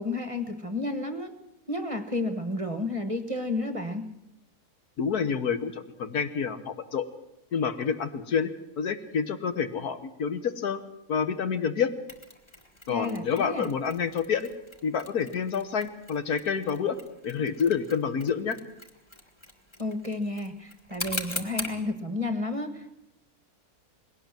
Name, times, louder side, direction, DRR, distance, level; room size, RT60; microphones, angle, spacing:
voice 1, 0.0-1.3 1.7-4.1 12.9-13.7 19.8-22.9, left 2 dB, 25° right, 9 dB, 1.1 m, -31 dB
voice 2, 5.0-7.1 7.5-8.5 8.8-10.8 11.1-11.9 12.9-14.5 14.8-17.0 17.2-18.6, left 6 dB, 80° left, 11 dB, 1.7 m, -28 dB
Mechanisms, 12.1-21.8, left 1 dB, 20° left, 1.6 m, -42 dB
20.5 x 17.5 x 7.6 m, 0.86 s
omnidirectional pair, 1.6 m